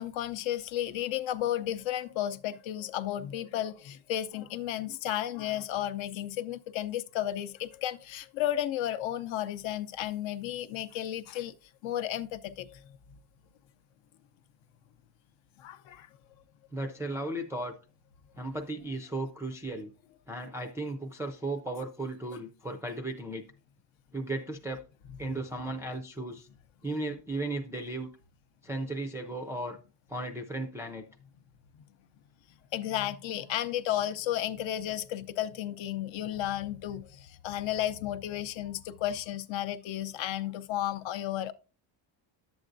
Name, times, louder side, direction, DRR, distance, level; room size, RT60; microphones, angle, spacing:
voice 1, 0.0-11.5 11.8-12.8 15.6-16.1 32.7-41.5, left 12 dB, 70° left, 0.7 m, -33 dB
voice 2, 16.7-17.8 18.4-19.9 20.3-23.4 24.1-24.8 25.2-26.5 26.8-28.1 28.6-29.8 30.1-31.0, right 2 dB, 5° right, 0.3 m, -35 dB
10.5 x 7.8 x 2.6 m
cardioid pair, 160°, 48 cm